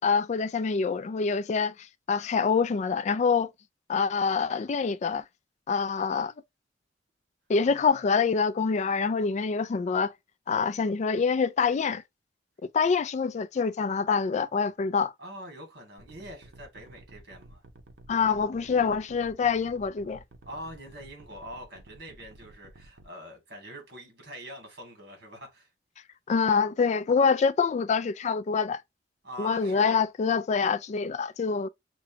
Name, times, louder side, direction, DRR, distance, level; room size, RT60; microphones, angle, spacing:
voice 1, 0.0-1.7 2.1-3.5 3.9-5.2 5.7-6.3 7.5-10.1 10.5-12.0 12.7-15.1 18.1-20.2 26.3-28.8 29.4-31.7, left 5 dB, 40° left, 0.3 m, -25 dB
voice 2, 7.7-8.1 15.2-17.6 20.4-25.7 29.2-30.0, right 1 dB, 60° right, 2.0 m, -44 dB
sound 1, 16.0-23.1, right 2 dB, 80° right, 0.7 m, -52 dB
5.9 x 2.2 x 2.8 m
head